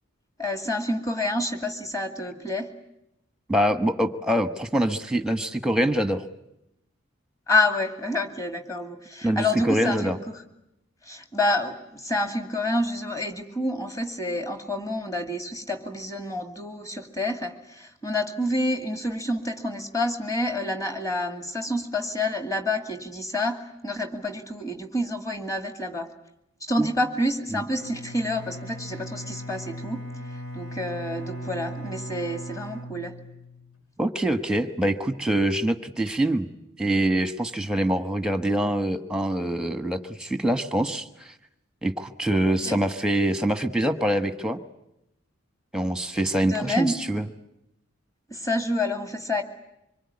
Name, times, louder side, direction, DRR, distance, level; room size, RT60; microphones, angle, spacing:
voice 1, 0.4-2.7 7.5-10.4 11.1-26.1 26.7-30.0 30.5-33.2 42.7-42.8 46.5-46.9 48.3-49.4, left 1 dB, 15° left, 6 dB, 2.4 m, -28 dB
voice 2, 3.5-6.2 9.2-10.2 26.8-26.9 27.5-27.6 34.0-36.5 36.8-41.3 41.8-44.6 45.7-47.3, right 1 dB, 5° right, 9 dB, 1.2 m, -25 dB
Bowed string instrument, 27.7-33.8, equal, 80° left, 3.2 m, -38 dB
25.5 x 22.5 x 9.7 m, 0.85 s
head